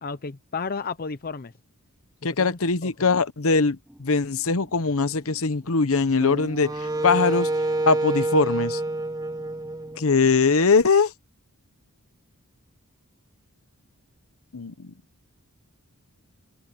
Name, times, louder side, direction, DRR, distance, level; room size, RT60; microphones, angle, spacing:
voice 1, 0.0-1.5 2.4-2.9, left 5 dB, 40° left, 0.7 m, -33 dB
voice 2, 2.2-7.5 7.9-8.8 10.0-11.1 14.5-14.9, left 4 dB, 65° left, 1.0 m, -21 dB
sound 1, 3.9-10.3, equal, ahead, 6.1 m, -53 dB
Wind instrument woodwind instrument, 6.2-10.4, right 2 dB, 20° right, 2.2 m, -28 dB
head